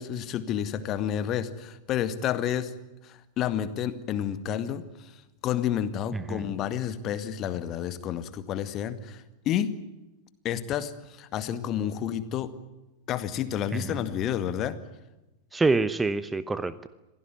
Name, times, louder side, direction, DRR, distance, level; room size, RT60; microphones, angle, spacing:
voice 1, 0.0-2.7 3.0-5.1 5.4-9.7 10.4-12.5 13.1-14.8, left 10 dB, 35° left, 12 dB, 2.0 m, -30 dB
voice 2, 6.1-6.5 13.7-14.1 15.5-16.9, right 3 dB, 10° right, 15 dB, 0.9 m, -27 dB
27.0 x 17.5 x 9.3 m, 1.0 s
figure-of-eight pair, 90°, 0 cm